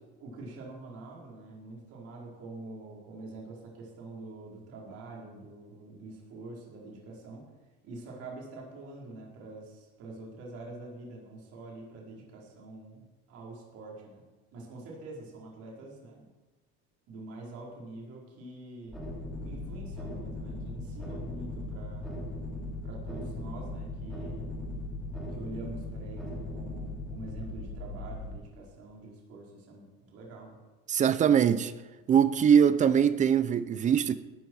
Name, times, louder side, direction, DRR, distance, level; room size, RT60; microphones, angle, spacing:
voice 1, 0.2-7.5 7.8-14.2 14.5-16.3 17.1-19.0 19.4-22.1 22.8-24.6 25.3-30.6, right 2 dB, 45° right, 4.5 m, -45 dB
sound 1, 18.9-28.3, left 2 dB, ahead, 3.3 m, -38 dB
voice 2, 30.9-31.7 32.1-34.1, right 8 dB, 25° right, 0.5 m, -22 dB
20.0 x 13.0 x 4.7 m
cardioid pair, 170°, 33 cm